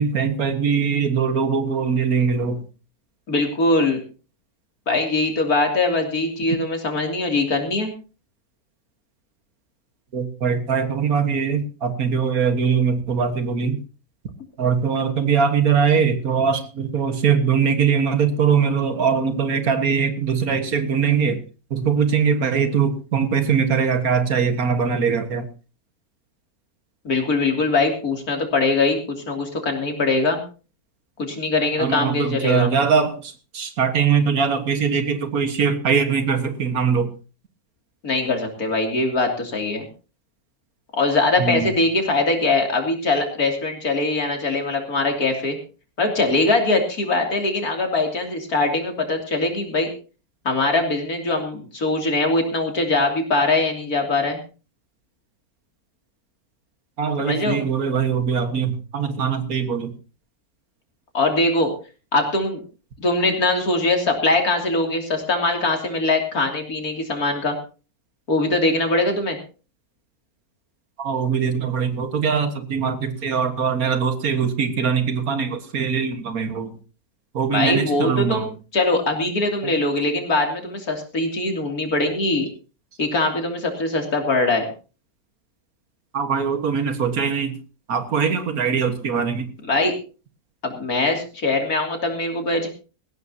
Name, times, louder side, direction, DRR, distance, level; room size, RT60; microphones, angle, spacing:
voice 1, 0.0-2.6 10.1-13.8 14.6-21.4 21.7-25.5 31.8-37.1 41.4-41.7 57.0-59.9 71.0-76.7 77.3-78.5 79.6-79.7 86.1-87.6 87.9-89.5, right 6 dB, 75° right, 8 dB, 2.0 m, -21 dB
voice 2, 3.3-4.0 4.9-7.9 27.0-30.4 31.2-32.7 38.0-39.9 41.0-45.6 46.0-49.9 50.4-54.4 57.2-57.6 61.1-61.7 62.1-62.6 63.0-67.5 68.3-69.4 77.5-78.5 78.7-82.5 83.0-84.7 89.6-89.9 90.6-92.7, left 2 dB, 75° left, 3 dB, 3.5 m, -22 dB
19.0 x 15.5 x 2.9 m, 0.35 s
omnidirectional pair, 1.6 m